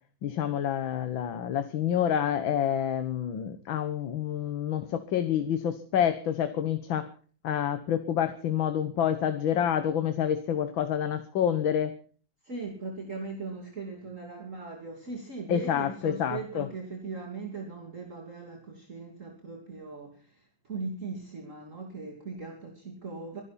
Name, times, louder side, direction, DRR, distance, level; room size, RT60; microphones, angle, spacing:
voice 1, 0.2-7.1 7.4-11.9 15.5-16.7, left 9 dB, 85° left, 10 dB, 1.9 m, -28 dB
voice 2, 12.4-23.4, right 4 dB, 40° right, 1 dB, 3.0 m, -39 dB
24.0 x 12.0 x 4.2 m, 0.42 s
omnidirectional pair, 2.1 m